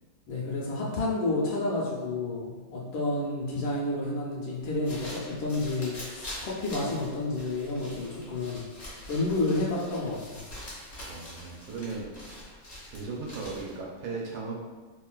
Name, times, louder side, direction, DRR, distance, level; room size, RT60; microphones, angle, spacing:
voice 1, 0.3-8.6 9.1-10.4, left 2 dB, 75° left, -4 dB, 1.2 m, -30 dB
sound 1, 4.6-13.9, left 1 dB, 50° left, 0.8 m, -44 dB
voice 2, 11.1-12.4 12.9-14.5, right 4 dB, 80° right, -3 dB, 1.5 m, -37 dB
3.7 x 2.3 x 2.2 m, 1.3 s
omnidirectional pair, 2.4 m